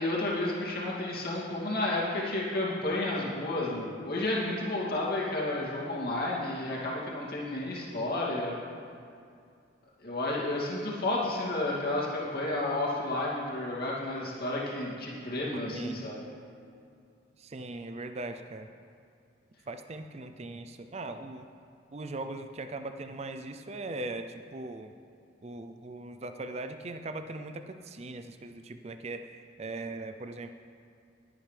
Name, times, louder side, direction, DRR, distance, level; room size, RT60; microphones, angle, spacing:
voice 1, 0.0-8.6 10.0-16.2, left 2 dB, 50° left, -5 dB, 2.6 m, -31 dB
voice 2, 15.7-16.0 17.4-18.7 19.7-21.5 21.9-24.9 25.4-30.5, right 2 dB, 30° right, 8 dB, 0.4 m, -40 dB
20.5 x 8.8 x 3.4 m, 2.4 s
head